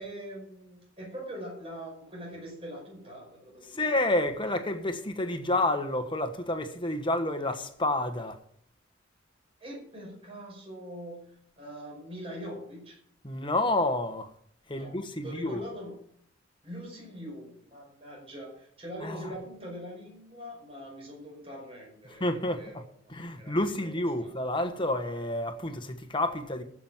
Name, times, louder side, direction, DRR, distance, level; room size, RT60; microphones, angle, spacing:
voice 1, 0.0-4.1 9.6-13.0 14.7-16.0 16.6-22.3 22.5-24.3, equal, 30° right, 5.5 m, -43 dB
voice 2, 3.7-8.4 13.2-14.3 14.7-15.6 19.0-19.3 22.2-22.8 23.1-26.6, left 1 dB, 25° left, 1.5 m, -29 dB
15.0 x 6.3 x 7.5 m
head